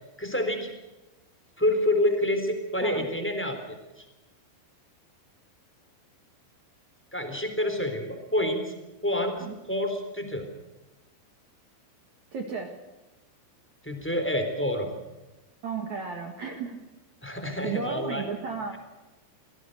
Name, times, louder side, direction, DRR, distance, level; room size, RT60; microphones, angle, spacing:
voice 1, 0.2-0.7 1.6-3.6 4.0-4.1 7.1-8.6 9.0-9.3 9.7-10.5 13.8-14.9 17.2-18.3, left 1 dB, 5° left, 6 dB, 2.7 m, -27 dB
voice 2, 12.3-12.8 15.6-16.8 17.6-18.8, right 5 dB, 55° right, 4 dB, 2.4 m, -33 dB
25.0 x 18.0 x 6.7 m, 1.1 s
omnidirectional pair, 5.5 m